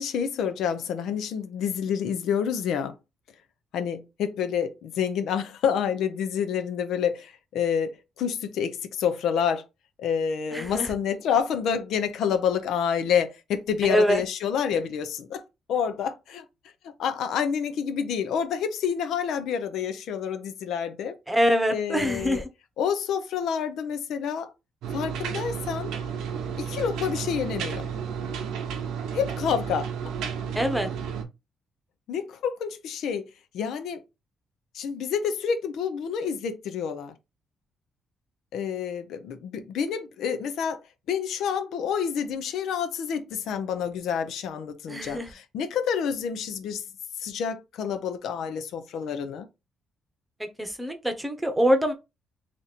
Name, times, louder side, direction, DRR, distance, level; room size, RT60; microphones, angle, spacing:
voice 1, 0.0-2.9 3.7-9.7 10.0-15.4 15.7-16.4 16.8-21.1 21.7-22.4 22.8-24.5 24.9-25.9 26.5-27.9 29.1-29.9 32.1-33.3 33.5-34.0 34.7-37.1 38.5-40.8 41.1-46.8 47.2-49.5, left 7 dB, 80° left, 0.6 m, -28 dB
voice 2, 10.5-10.9 13.9-14.2 21.3-22.5 30.5-30.9 44.9-45.3 50.4-51.9, equal, 5° right, 0.9 m, -24 dB
sound 1, 24.8-31.2, right 7 dB, 85° right, 0.8 m, -32 dB
3.0 x 2.6 x 4.1 m
cardioid pair, 90°, 0 cm